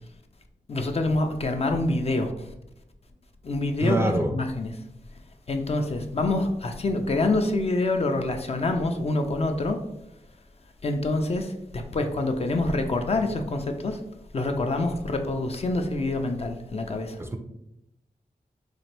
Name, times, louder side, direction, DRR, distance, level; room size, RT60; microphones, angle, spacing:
voice 1, 0.7-2.5 3.4-4.7 5.5-9.8 10.8-14.0 14.3-17.2, left 2 dB, 45° left, 5 dB, 0.4 m, -26 dB
voice 2, 3.8-4.3 17.2-17.4, right 1 dB, 15° right, 5 dB, 0.4 m, -25 dB
4.0 x 2.5 x 3.2 m, 0.83 s
wide cardioid pair, 95°, 14 cm